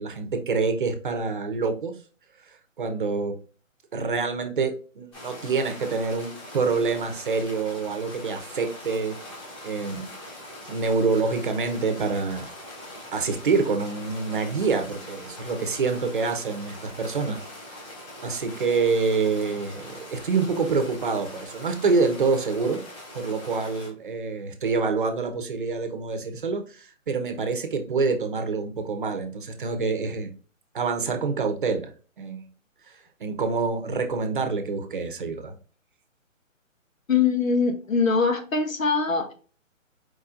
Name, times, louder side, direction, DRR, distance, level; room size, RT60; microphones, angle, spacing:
voice 1, 0.0-1.9 2.5-3.3 3.9-9.2 9.6-10.1 10.7-12.5 13.1-17.4 17.7-17.8 18.2-22.8 23.1-30.3 30.7-31.9 32.2-32.5 32.9-35.6, right 4 dB, 40° right, 6 dB, 0.8 m, -26 dB
sound 1, 5.1-23.9, left 1 dB, 20° left, 1.8 m, -42 dB
voice 2, 37.1-39.3, left 5 dB, 80° left, 6 dB, 1.5 m, -22 dB
4.7 x 4.3 x 2.4 m, 0.38 s
hypercardioid pair, 160°, 40 cm